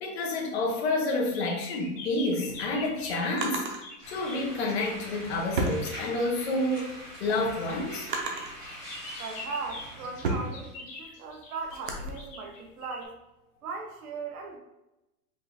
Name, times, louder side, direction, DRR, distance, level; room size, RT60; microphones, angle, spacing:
voice 1, 0.0-3.7 4.1-6.9 7.2-8.1, left 2 dB, 40° left, -1 dB, 1.0 m, -29 dB
sound 1, 0.6-4.5 5.0-5.3 7.2-13.0, left 2 dB, 20° left, 0.8 m, -44 dB
Drawer open or close, 2.2-3.8 4.9-6.5 6.9-8.6 9.3-12.1, right 3 dB, 35° right, 0.5 m, -35 dB
sound 2, 4.0-10.7, equal, 10° right, 1.4 m, -44 dB
voice 2, 9.2-13.1 13.6-14.6, right 4 dB, 65° right, 2 dB, 1.0 m, -38 dB
5.1 x 3.7 x 2.7 m, 0.96 s
supercardioid pair, 170°, 47 cm